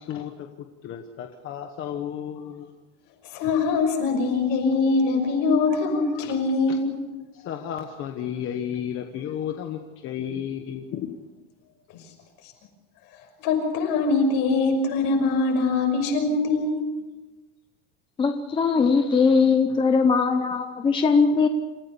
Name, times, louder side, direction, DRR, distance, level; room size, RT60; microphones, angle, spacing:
voice 1, 0.8-2.7 7.4-9.8 10.0-11.1, left 9 dB, 30° left, 5 dB, 1.2 m, -32 dB
voice 2, 3.3-7.0 13.4-16.8, left 3 dB, 55° left, 3 dB, 6.0 m, -23 dB
voice 3, 18.2-21.5, left 5 dB, 15° left, 6 dB, 0.7 m, -20 dB
28.0 x 15.5 x 6.9 m, 1.2 s
cardioid pair, 175°, 39 cm